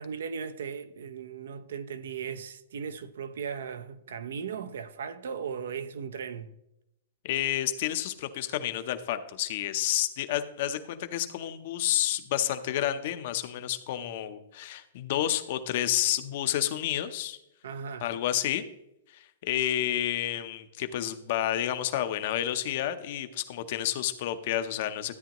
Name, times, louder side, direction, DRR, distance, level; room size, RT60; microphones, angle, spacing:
voice 1, 0.0-6.6 17.6-18.1, right 6 dB, 70° right, 0.8 m, -37 dB
voice 2, 7.2-17.4 18.0-18.6 19.1-25.1, left 12 dB, 40° left, 0.7 m, -30 dB
13.0 x 9.1 x 3.0 m
hypercardioid pair, 175°, 0 cm